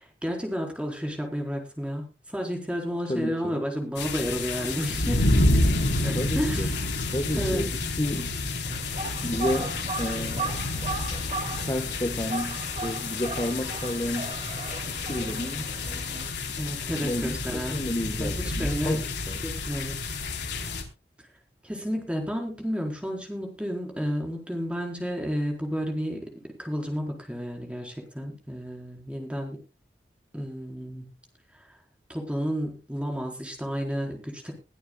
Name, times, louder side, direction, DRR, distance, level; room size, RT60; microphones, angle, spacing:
voice 1, 0.0-5.5 5.8-6.8 7.3-7.7 16.5-17.9 18.2-19.0 19.4-20.1 20.5-20.8 21.6-29.6 30.3-31.1 31.5-31.7 32.1-34.5, equal, 5° right, 2 dB, 4.5 m, -32 dB
voice 2, 3.1-3.6 6.1-6.7 7.1-8.3 9.2-10.6 11.6-14.3 14.8-15.7 17.0-19.4, left 1 dB, 20° left, 6 dB, 1.4 m, -31 dB
sound 1, 4.0-20.8, left 2 dB, 85° left, 4.0 m, -29 dB
sound 2, 8.6-16.3, right 3 dB, 35° right, 2.3 m, -36 dB
22.0 x 11.5 x 2.4 m, 0.29 s
head